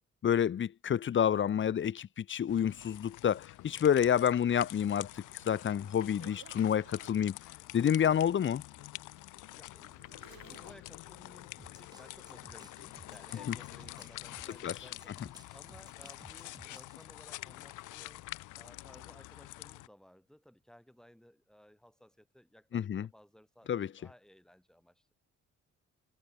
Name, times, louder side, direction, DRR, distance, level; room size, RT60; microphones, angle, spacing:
voice 1, 0.2-7.4 7.7-8.6 14.6-14.7 22.7-23.1 23.7-23.9, left 9 dB, 40° left, 0.7 m, -29 dB
sound 1, 2.5-19.9, left 18 dB, 85° left, 0.7 m, -47 dB
Zipper (clothing), 3.6-3.7 4.3-7.2 8.2-11.1 12.1-12.4 12.9-13.0, right 11 dB, 70° right, 4.7 m, -60 dB
voice 2, 9.5-18.3 18.5-25.1, equal, ahead, 6.0 m, -59 dB
sound 2, 11.6-17.1, right 2 dB, 15° right, 2.9 m, -58 dB
cardioid pair, 90°, 30 cm